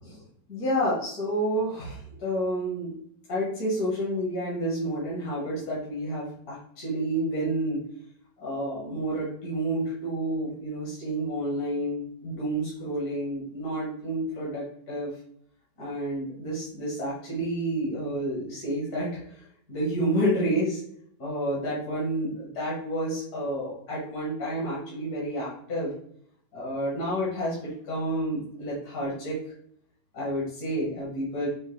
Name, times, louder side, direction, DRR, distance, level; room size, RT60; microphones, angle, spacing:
voice 1, 0.5-2.9 3.3-7.8 8.4-15.1 15.8-19.4 19.7-20.8 21.2-25.9 26.5-29.4 30.1-31.5, right 1 dB, 60° left, -7 dB, 1.8 m, -30 dB
5.4 x 2.2 x 3.1 m, 0.68 s
omnidirectional pair, 1.9 m